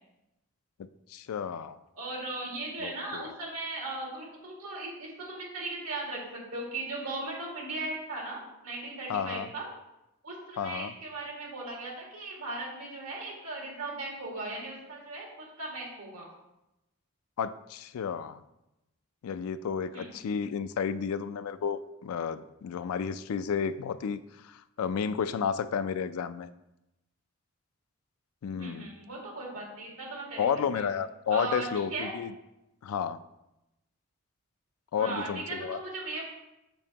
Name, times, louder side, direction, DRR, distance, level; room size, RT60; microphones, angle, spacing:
voice 1, 1.1-1.8 2.8-3.3 9.1-9.5 10.6-10.9 17.4-18.4 19.2-24.2 24.4-26.5 28.4-28.9 30.4-32.3 32.8-33.2 34.9-35.8, left 7 dB, 75° left, 13 dB, 0.3 m, -32 dB
voice 2, 2.0-9.6 10.2-16.3 19.9-20.1 28.5-30.5 30.7-30.9 31.3-32.1 35.0-36.2, right 2 dB, 85° right, -2 dB, 2.0 m, -38 dB
7.0 x 5.3 x 2.8 m, 0.92 s
head